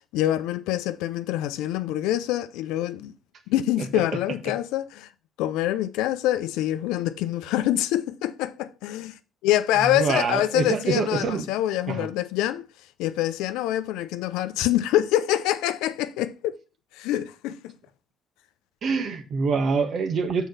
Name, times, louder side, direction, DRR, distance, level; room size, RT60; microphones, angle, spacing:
voice 1, 0.1-3.1 3.5-5.1 5.4-9.1 9.4-12.7 13.0-16.6 17.0-17.6, left 13 dB, 80° left, 0.6 m, -25 dB
voice 2, 9.8-11.5 11.9-12.1 18.8-20.5, right 5 dB, 55° right, 1.3 m, -25 dB
6.4 x 4.5 x 5.6 m
supercardioid pair, 65°, 0 cm